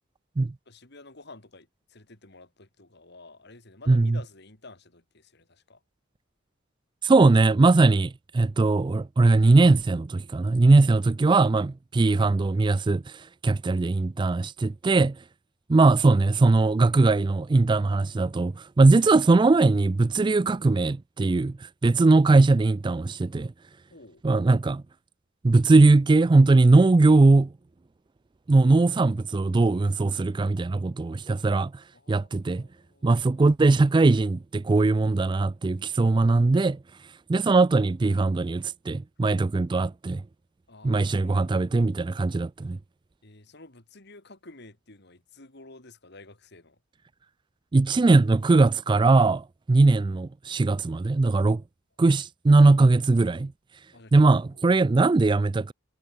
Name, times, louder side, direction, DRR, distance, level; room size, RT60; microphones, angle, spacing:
voice 1, 0.7-5.8 11.2-11.4 23.9-24.2 28.6-28.7 31.9-33.5 40.7-41.7 43.2-46.8 47.9-48.2 52.1-52.2 53.9-54.2 54.5-54.7, left 2 dB, 60° left, 3.6 m, -50 dB
voice 2, 3.9-4.2 7.0-15.2 15.7-23.5 24.2-24.8 25.4-27.5 28.5-32.7 33.0-36.8 37.3-40.2 40.8-42.8 47.7-51.6 52.0-53.5 54.1-55.7, right 3 dB, 25° right, 0.3 m, -20 dB
head